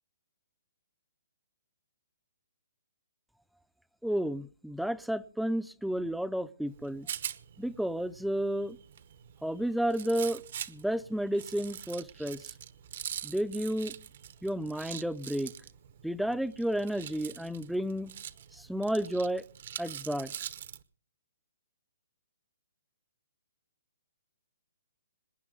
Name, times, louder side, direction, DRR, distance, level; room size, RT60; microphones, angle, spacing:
voice 1, 4.0-7.1 7.6-8.8 9.4-10.4 10.7-12.4 13.2-13.9 14.4-15.5 16.0-18.1 18.5-19.4 19.8-20.3, right 1 dB, ahead, 0.6 m, -31 dB
Rattle, 6.7-20.8, right 9 dB, 55° right, 1.1 m, -44 dB
26.0 x 10.0 x 3.9 m
hypercardioid pair, 150°, 0 cm